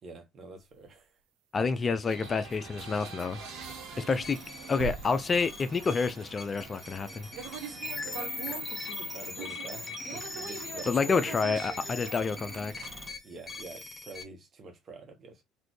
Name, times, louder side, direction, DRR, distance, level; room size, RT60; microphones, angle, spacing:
voice 1, 0.0-1.1 7.8-11.6 13.2-15.4, right 3 dB, 40° right, 1.3 m, -47 dB
sound 1, 0.6-7.8, right 6 dB, 80° right, 0.5 m, -48 dB
voice 2, 1.5-3.4 4.0-4.4 4.7-7.3 10.9-12.9, left 4 dB, 30° left, 0.4 m, -29 dB
sound 2, 2.1-13.1, right 6 dB, 65° right, 1.1 m, -44 dB
sound 3, 4.2-14.2, left 3 dB, 15° left, 1.1 m, -40 dB
4.0 x 2.6 x 3.2 m
hypercardioid pair, 70°, 0 cm